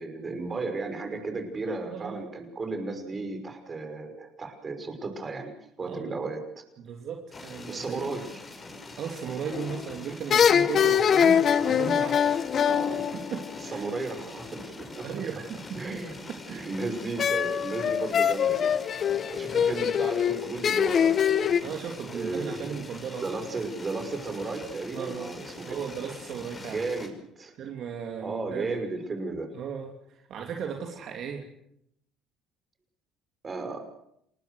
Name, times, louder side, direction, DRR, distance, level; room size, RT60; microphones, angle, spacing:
voice 1, 0.0-5.5 5.8-6.6 7.7-8.4 12.6-13.1 13.6-15.1 15.7-16.1 16.5-18.7 19.3-21.5 22.1-22.8 23.2-25.8 26.7-27.5 28.2-29.5 33.4-33.8, right 3 dB, 30° right, 6 dB, 5.8 m, -34 dB
voice 2, 5.9-6.2 6.8-8.0 9.0-12.4 13.1-13.9 15.0-16.7 19.5-19.8 21.6-23.3 24.9-26.9 27.6-28.7 29.5-31.5, right 7 dB, 60° right, 2 dB, 3.0 m, -36 dB
sound 1, 7.3-27.1, left 2 dB, 25° left, 5.6 m, -44 dB
sound 2, 9.5-9.9 10.3-14.0 17.2-21.6, left 8 dB, 45° left, 1.1 m, -24 dB
28.0 x 20.0 x 6.5 m, 0.74 s
supercardioid pair, 95°, 0 cm